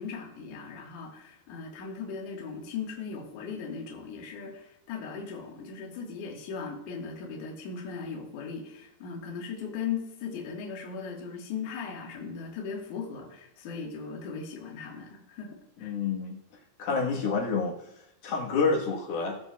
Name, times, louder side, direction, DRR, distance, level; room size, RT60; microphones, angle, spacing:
voice 1, 0.0-16.0, left 6 dB, 60° left, -1 dB, 2.7 m, -38 dB
voice 2, 15.8-16.4 16.8-17.7 18.2-19.4, left 4 dB, 75° left, -2 dB, 3.2 m, -28 dB
18.5 x 6.7 x 2.3 m, 0.84 s
omnidirectional pair, 4.5 m